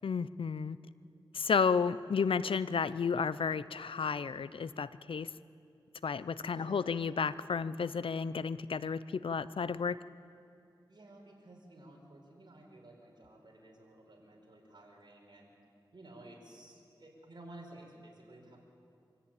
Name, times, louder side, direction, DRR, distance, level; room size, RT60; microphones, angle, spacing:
voice 1, 0.0-0.8 1.3-5.3 6.0-10.0, left 5 dB, 80° left, 16 dB, 0.6 m, -32 dB
voice 2, 6.4-7.0 10.9-15.5 15.9-18.6, right 1 dB, 55° right, -1 dB, 4.9 m, -54 dB
24.5 x 14.0 x 8.9 m, 2.5 s
wide cardioid pair, 55°, 9 cm